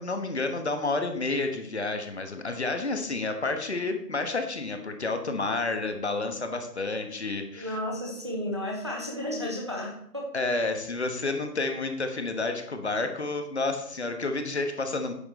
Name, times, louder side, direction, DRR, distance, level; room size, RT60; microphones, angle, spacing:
voice 1, 0.0-7.8 10.3-15.1, left 3 dB, 45° left, 6 dB, 1.4 m, -30 dB
voice 2, 7.5-10.3, left 1 dB, 20° right, -2 dB, 0.9 m, -33 dB
10.0 x 9.2 x 3.2 m, 0.72 s
figure-of-eight pair, 160°, 48 cm